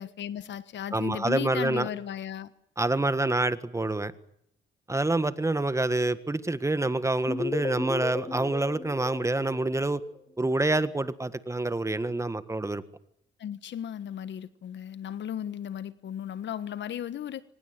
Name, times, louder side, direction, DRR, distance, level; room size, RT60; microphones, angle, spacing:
voice 1, 0.0-2.5 13.4-17.4, left 10 dB, 65° left, 15 dB, 1.4 m, -35 dB
voice 2, 0.9-1.9 2.8-4.1 4.9-10.0 10.4-12.8, right 2 dB, 15° right, 13 dB, 1.6 m, -27 dB
sound 1, 7.3-10.2, left 3 dB, 20° left, 1.8 m, -35 dB
25.0 x 19.0 x 9.5 m, 0.71 s
cardioid pair, 90°, 20 cm